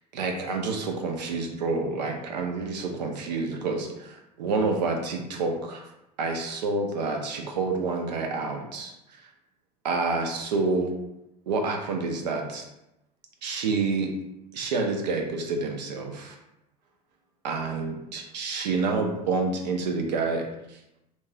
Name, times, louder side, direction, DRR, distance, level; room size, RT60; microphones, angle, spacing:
voice 1, 0.1-5.8 6.2-8.9 9.8-10.9 11.5-12.6 13.4-14.1 14.5-16.3 17.4-20.5, right 3 dB, 80° right, 2 dB, 0.6 m, -28 dB
3.0 x 2.8 x 2.2 m, 0.88 s
hypercardioid pair, 80°, 21 cm